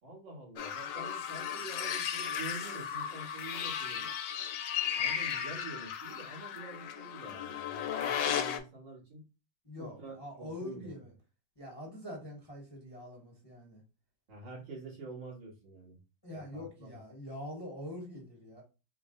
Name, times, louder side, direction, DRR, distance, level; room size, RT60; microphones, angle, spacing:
voice 1, 0.0-4.1 5.0-9.2 9.8-10.9 14.3-16.0 16.3-17.0, right 2 dB, 85° right, -3 dB, 2.4 m, -47 dB
sound 1, 0.6-8.6, left 9 dB, 80° left, 1.2 m, -35 dB
voice 2, 9.6-11.1 11.6-13.8 16.2-18.6, left 1 dB, 20° left, -1 dB, 0.7 m, -44 dB
4.5 x 2.1 x 3.6 m, 0.31 s
omnidirectional pair, 2.0 m